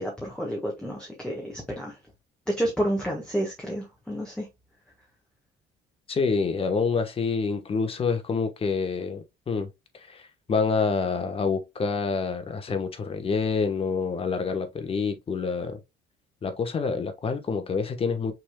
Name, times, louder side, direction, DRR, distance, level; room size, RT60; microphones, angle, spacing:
voice 1, 0.0-2.0 2.5-4.5, equal, 5° left, 1.4 m, -30 dB
voice 2, 6.1-9.7 9.9-15.8 16.4-18.3, left 5 dB, 35° left, 1.1 m, -27 dB
6.0 x 3.6 x 2.2 m
cardioid pair, 110°, 17 cm